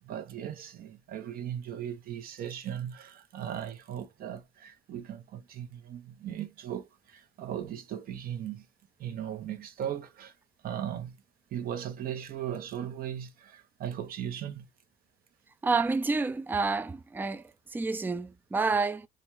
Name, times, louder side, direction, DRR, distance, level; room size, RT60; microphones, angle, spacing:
voice 1, 0.0-8.7 9.0-10.4 10.6-11.2 11.5-14.7, right 10 dB, 60° right, 1.0 m, -38 dB
voice 2, 15.6-17.4 17.7-19.1, right 4 dB, 10° right, 0.4 m, -29 dB
3.9 x 2.4 x 3.0 m
cardioid pair, 110°, 17 cm